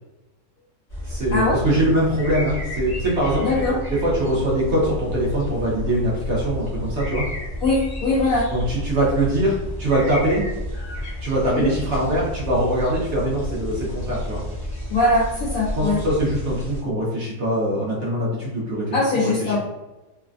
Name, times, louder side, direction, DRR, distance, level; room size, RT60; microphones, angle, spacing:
sound 1, 0.9-16.8, left 1 dB, 40° left, 0.5 m, -31 dB
voice 1, 1.0-7.2 8.5-10.4 11.2-14.4 15.8-18.8 19.1-19.6, right 1 dB, 55° right, -5 dB, 0.8 m, -23 dB
voice 2, 3.4-3.8 7.6-8.5 11.5-11.7 14.9-16.0 18.9-19.6, left 2 dB, 70° left, -5 dB, 0.9 m, -21 dB
3.2 x 2.1 x 2.5 m, 1.1 s
omnidirectional pair, 1.9 m